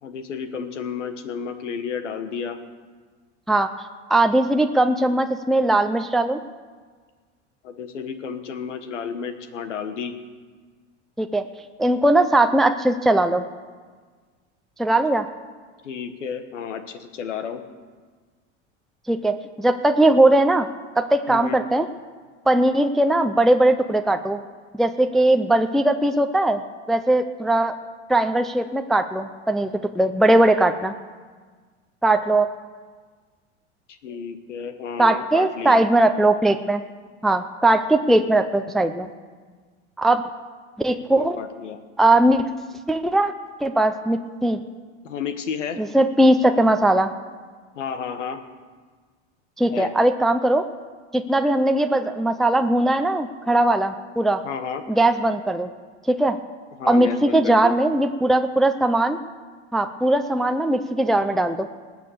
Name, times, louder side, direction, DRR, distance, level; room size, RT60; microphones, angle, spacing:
voice 1, 0.0-2.6 7.6-10.1 15.8-17.6 21.3-21.6 34.0-35.8 41.1-41.8 45.0-45.8 47.7-48.4 49.7-49.9 54.4-54.8 56.8-57.7, left 6 dB, 90° left, 9 dB, 1.4 m, -31 dB
voice 2, 4.1-6.4 11.2-11.4 11.8-13.4 14.8-15.3 19.1-20.7 21.0-21.9 22.5-24.4 24.7-26.6 26.9-27.7 28.1-30.9 32.0-32.5 35.0-36.8 37.2-39.1 40.0-40.2 40.8-41.4 42.0-42.5 42.9-43.3 43.6-44.6 45.8-47.1 49.6-50.6 51.1-54.4 54.9-55.7 56.1-56.4 56.9-59.2 59.7-61.7, right 1 dB, ahead, 6 dB, 0.5 m, -19 dB
19.5 x 6.9 x 6.9 m, 1.5 s
hypercardioid pair, 100°, 35 cm